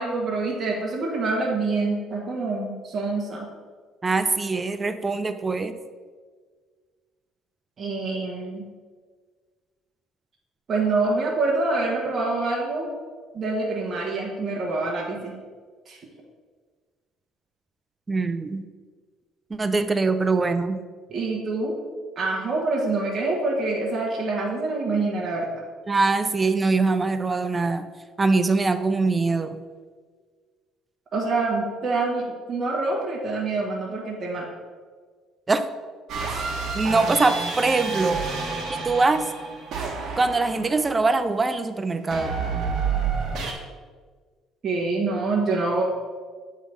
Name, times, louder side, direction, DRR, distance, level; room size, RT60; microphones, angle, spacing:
voice 1, 0.0-3.5 7.8-8.6 10.7-12.9 13.3-15.3 15.9-16.0 21.1-21.7 22.2-25.6 31.1-34.5 44.6-45.8, right 3 dB, 35° right, -3 dB, 1.2 m, -26 dB
voice 2, 4.0-5.7 18.1-18.6 19.5-20.8 25.9-27.9 28.2-29.6 35.5-35.6 36.7-38.2 38.7-39.3 40.2-42.4, right 3 dB, 20° right, 10 dB, 0.4 m, -23 dB
sound 1, 36.1-41.2 42.1-43.5, right 5 dB, 55° right, 1.4 m, -29 dB
8.5 x 3.7 x 4.8 m, 1.5 s
cardioid pair, 130°, 0 cm